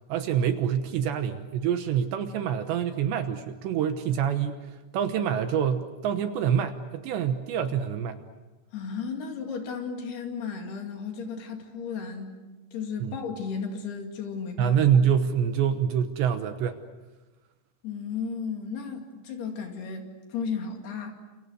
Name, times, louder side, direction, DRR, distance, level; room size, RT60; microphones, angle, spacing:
voice 1, 0.1-4.6 4.9-8.2 13.0-13.1 14.6-16.8, right 8 dB, 70° right, 8 dB, 3.0 m, -26 dB
voice 2, 8.7-12.4 12.7-14.8 17.8-21.1, left 6 dB, 60° left, 3 dB, 4.1 m, -34 dB
30.0 x 28.0 x 6.4 m, 1.2 s
omnidirectional pair, 5.8 m